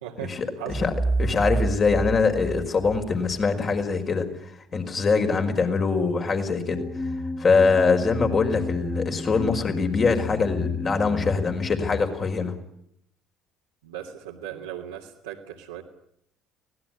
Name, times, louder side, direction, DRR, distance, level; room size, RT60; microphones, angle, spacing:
voice 1, 0.0-0.8 13.8-15.8, right 10 dB, 85° right, -4 dB, 2.5 m, -37 dB
sound 1, 0.7-3.5, right 3 dB, 10° right, 2.4 m, -28 dB
voice 2, 1.2-4.3 4.7-6.9 7.4-12.5, left 4 dB, 40° left, 5 dB, 5.3 m, -23 dB
sound 2, 6.7-12.0, left 4 dB, 15° left, 2.7 m, -32 dB
24.5 x 18.5 x 9.7 m, 0.73 s
hypercardioid pair, 60°, 0 cm